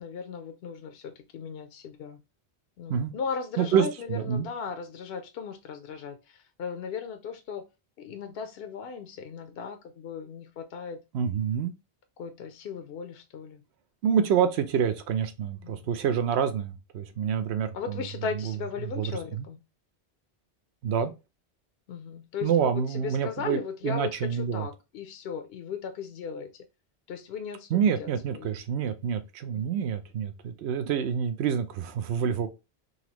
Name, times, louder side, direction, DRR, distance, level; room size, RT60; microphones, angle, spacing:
voice 1, 0.0-2.2 2.8-7.6 8.0-11.0 12.2-13.6 15.6-15.8 17.7-19.6 21.9-26.5 27.1-28.5 29.5-29.7, left 6 dB, 70° left, 0.8 m, -37 dB
voice 2, 3.6-4.5 11.1-11.7 14.0-18.0 19.0-19.5 20.8-21.1 22.4-24.7 27.7-32.5, right 7 dB, 80° right, 0.9 m, -27 dB
4.0 x 3.0 x 2.9 m
omnidirectional pair, 1.1 m